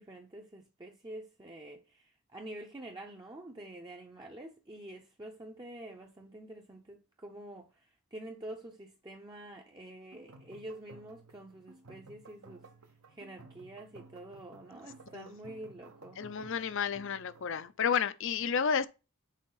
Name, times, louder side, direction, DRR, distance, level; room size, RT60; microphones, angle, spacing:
voice 1, 0.0-12.6 13.1-16.2, right 1 dB, 20° right, 0.6 m, -47 dB
sound 1, 10.1-17.7, right 3 dB, 75° right, 1.0 m, -55 dB
voice 2, 16.2-18.9, left 7 dB, 55° left, 0.5 m, -31 dB
6.4 x 4.6 x 3.9 m
head